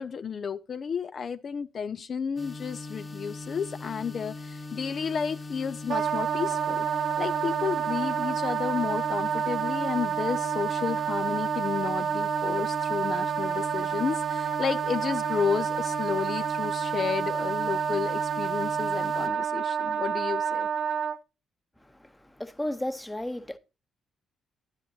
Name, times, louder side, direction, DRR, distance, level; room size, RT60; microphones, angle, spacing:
voice 1, 0.0-20.7, left 6 dB, 45° left, 0.4 m, -32 dB
sound 1, 2.4-19.3, left 3 dB, 30° left, 1.3 m, -40 dB
Wind instrument woodwind instrument, 5.9-21.2, right 8 dB, 60° right, 0.5 m, -29 dB
voice 2, 22.4-23.6, left 1 dB, 10° left, 0.8 m, -33 dB
10.5 x 10.0 x 2.8 m
cardioid pair, 90°, 0 cm